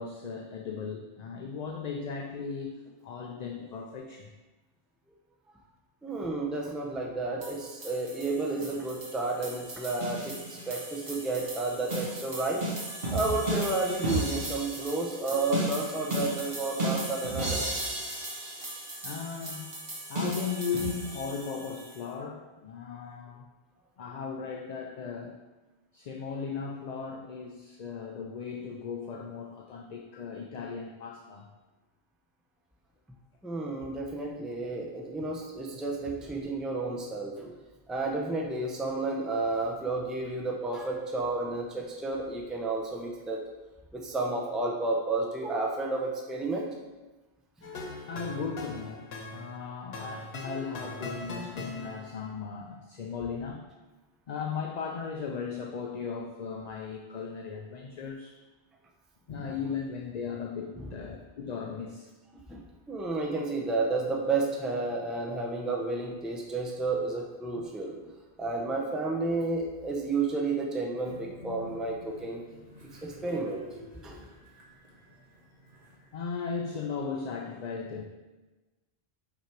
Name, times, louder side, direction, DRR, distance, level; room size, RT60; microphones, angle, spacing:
voice 1, 0.0-4.3 18.5-19.8 20.1-23.5 24.0-25.4 25.9-31.5 48.1-53.7 54.3-58.4 59.3-62.1 76.1-78.0, left 5 dB, 50° left, 2 dB, 0.5 m, -37 dB
voice 2, 6.0-12.7 13.1-17.8 33.4-37.6 37.9-43.4 43.9-46.7 60.7-60.9 62.5-62.6 62.9-68.0 68.4-72.4 73.0-73.6 74.0-74.2, right 3 dB, ahead, -1 dB, 0.7 m, -31 dB
sound 1, 7.4-22.0, right 1 dB, 65° right, 1.8 m, -35 dB
sound 2, 47.6-52.3, left 2 dB, 70° left, 1.1 m, -41 dB
Train, 71.1-76.3, right 1 dB, 40° right, 1.5 m, -49 dB
5.8 x 4.9 x 4.5 m, 1.2 s
omnidirectional pair, 1.1 m